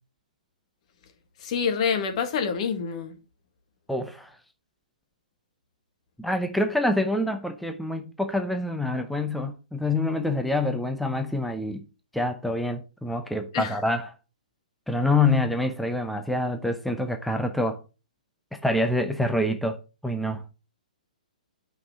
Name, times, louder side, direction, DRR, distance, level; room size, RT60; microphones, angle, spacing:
voice 1, 1.4-3.1 13.5-13.7, left 6 dB, 50° left, 1.9 m, -26 dB
voice 2, 3.9-4.4 6.2-11.8 12.1-14.1 14.9-17.8 18.5-20.4, left 2 dB, ahead, 0.8 m, -26 dB
8.6 x 5.7 x 4.8 m
hypercardioid pair, 130°, 5 cm